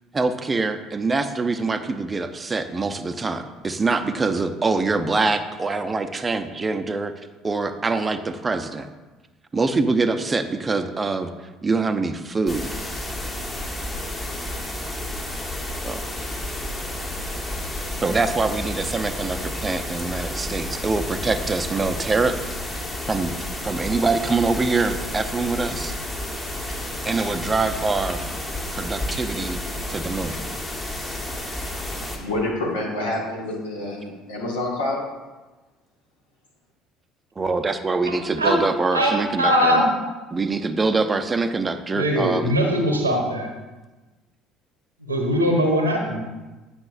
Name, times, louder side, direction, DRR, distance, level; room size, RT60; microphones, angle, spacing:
voice 1, 0.1-7.1 7.4-8.9 9.5-11.3 11.6-12.7 15.8-16.0 18.0-22.4 23.1-23.3 23.6-25.9 27.1-28.3 28.8-30.3 37.4-39.8 40.3-42.5, right 3 dB, 25° right, 9 dB, 0.6 m, -24 dB
sound 1, 12.5-32.2, left 1 dB, 20° left, 1.4 m, -31 dB
voice 2, 32.2-35.0, left 1 dB, 75° left, -3 dB, 1.6 m, -27 dB
voice 3, 38.1-38.5 38.9-39.1 39.4-39.9 41.9-43.5 45.1-46.2, equal, 85° right, 2 dB, 0.9 m, -21 dB
9.6 x 6.0 x 2.5 m, 1.2 s
figure-of-eight pair, 60°, 0 cm